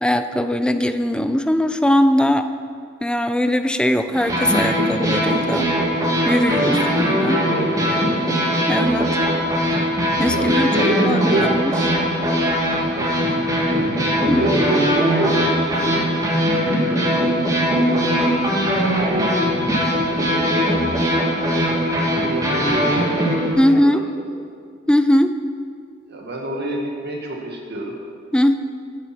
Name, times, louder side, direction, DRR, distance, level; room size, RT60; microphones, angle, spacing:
voice 1, 0.0-2.5 3.0-5.7 6.2-7.4 8.7-9.2 10.2-10.7 11.0-11.7 14.3-14.4 23.6-24.0 24.9-25.3 28.3-28.5, left 1 dB, 5° left, 9 dB, 0.5 m, -20 dB
sound 1, 4.1-23.5, equal, 20° right, 2.4 m, -20 dB
voice 2, 6.4-8.2 10.3-11.5 13.0-13.1 13.5-13.9 14.2-16.1 16.6-17.1 17.7-18.2 19.1-19.4 20.1-20.7 22.2-24.3 26.1-28.0, right 1 dB, 55° right, 0 dB, 1.8 m, -27 dB
sound 2, 13.6-15.2 16.1-17.6 18.0-20.4, left 1 dB, 45° left, 3.3 m, -36 dB
15.5 x 8.8 x 5.9 m, 2.2 s
head